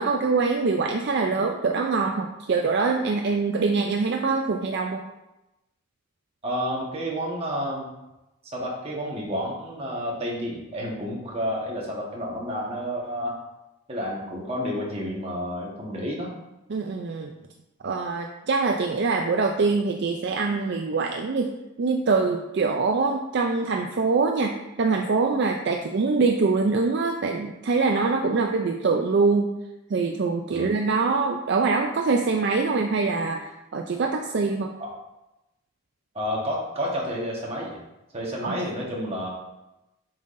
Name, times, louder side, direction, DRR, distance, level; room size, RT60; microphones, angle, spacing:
voice 1, 0.0-5.1 16.7-17.3 17.8-21.5 21.8-24.5 24.8-29.5 29.9-34.7 38.4-38.6, right 4 dB, 50° right, 3 dB, 0.4 m, -24 dB
voice 2, 6.4-7.9 8.5-13.4 13.9-16.3 30.5-30.7 36.1-37.8 38.1-39.3, equal, 30° right, -3 dB, 1.3 m, -30 dB
7.1 x 5.6 x 2.6 m, 0.96 s
head